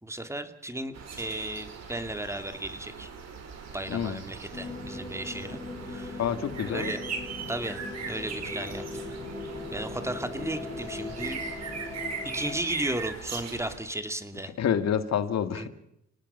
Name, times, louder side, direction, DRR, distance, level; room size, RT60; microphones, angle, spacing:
voice 1, 0.0-3.1 3.7-5.6 5.9-6.2 6.6-7.0 7.5-8.8 9.1-9.2 9.7-11.4 12.3-14.5 15.5-15.7, right 1 dB, 10° right, 9 dB, 2.4 m, -35 dB
sound 1, 0.9-13.8, right 5 dB, 60° right, 5.2 m, -40 dB
voice 2, 3.9-4.2 6.2-7.0 14.6-15.7, left 8 dB, 60° left, 10 dB, 2.1 m, -28 dB
sound 2, 4.5-12.6, left 3 dB, 20° left, 3.8 m, -39 dB
29.5 x 18.5 x 5.6 m, 0.79 s
cardioid pair, 90°, 30 cm